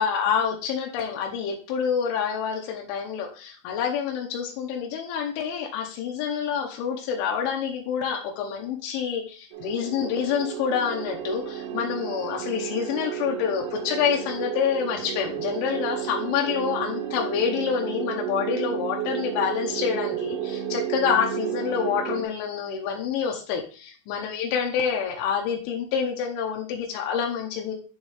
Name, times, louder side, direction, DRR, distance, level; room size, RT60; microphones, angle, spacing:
voice 1, 0.0-27.7, left 7 dB, 85° left, 1 dB, 3.3 m, -27 dB
sound 1, 9.5-22.2, right 10 dB, 75° right, 2.5 m, -32 dB
10.5 x 3.6 x 3.5 m, 0.38 s
omnidirectional pair, 5.4 m